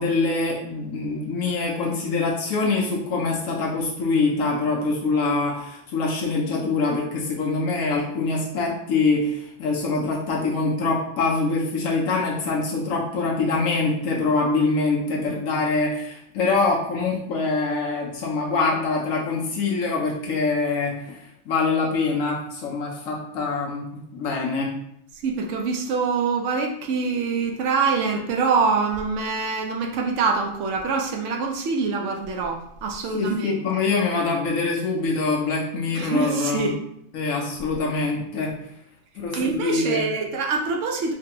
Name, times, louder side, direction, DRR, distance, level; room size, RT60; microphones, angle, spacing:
voice 1, 0.0-24.7 33.1-36.7 37.1-38.5 39.2-40.1, left 3 dB, 75° left, -2 dB, 1.1 m, -24 dB
voice 2, 25.2-33.8 35.9-36.7 39.3-41.1, right 4 dB, 70° right, 2 dB, 0.8 m, -25 dB
3.3 x 3.2 x 2.8 m, 0.74 s
omnidirectional pair, 1.4 m